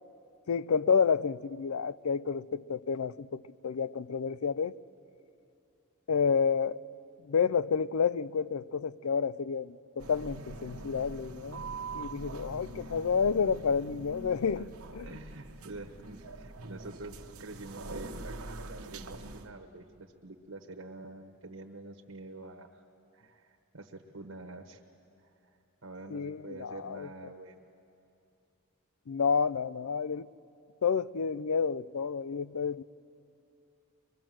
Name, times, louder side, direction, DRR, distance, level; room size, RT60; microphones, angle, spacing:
voice 1, 0.5-4.8 6.1-6.8 7.2-11.7 11.9-15.1 26.1-27.1 29.1-30.3 30.8-32.8, left 6 dB, 85° left, 0.5 m, -30 dB
sound 1, 10.0-19.5, right 2 dB, 90° right, 1.1 m, -43 dB
voice 2, 15.0-22.8 23.1-24.8 25.2-27.7, right 2 dB, 70° right, 1.1 m, -47 dB
24.0 x 21.5 x 7.6 m
head